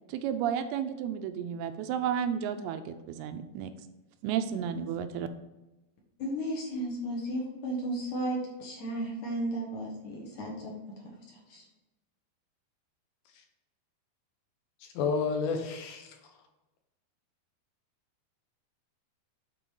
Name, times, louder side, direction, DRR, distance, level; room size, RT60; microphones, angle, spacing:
voice 1, 0.1-3.7 4.2-5.3, right 8 dB, 80° right, 8 dB, 2.5 m, -32 dB
voice 2, 6.2-10.8 11.0-11.1 11.5-11.6, right 1 dB, 60° left, -1 dB, 2.3 m, -34 dB
voice 3, 14.8-16.1, left 5 dB, 75° left, 4 dB, 2.6 m, -30 dB
8.7 x 4.2 x 5.3 m, 1.0 s
omnidirectional pair, 4.6 m